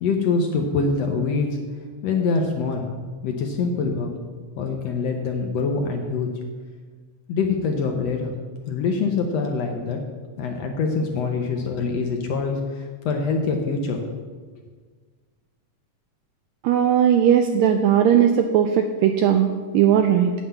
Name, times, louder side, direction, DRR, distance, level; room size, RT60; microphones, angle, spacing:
voice 1, 0.0-1.6 2.0-2.9 3.2-4.1 4.6-6.3 7.3-8.3 8.7-10.0 10.4-14.0, left 4 dB, 70° left, 3 dB, 1.7 m, -24 dB
voice 2, 16.6-20.3, right 9 dB, 85° right, 6 dB, 1.6 m, -18 dB
8.9 x 7.5 x 6.8 m, 1.5 s
omnidirectional pair, 3.7 m